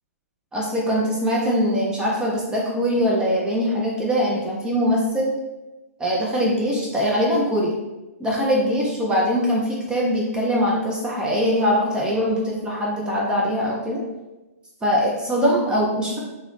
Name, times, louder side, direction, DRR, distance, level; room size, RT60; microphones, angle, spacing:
voice 1, 0.5-5.3 6.0-7.7 8.2-14.0 14.8-16.2, equal, 10° right, -4 dB, 0.4 m, -22 dB
2.3 x 2.1 x 3.0 m, 1.0 s
hypercardioid pair, 130°, 9 cm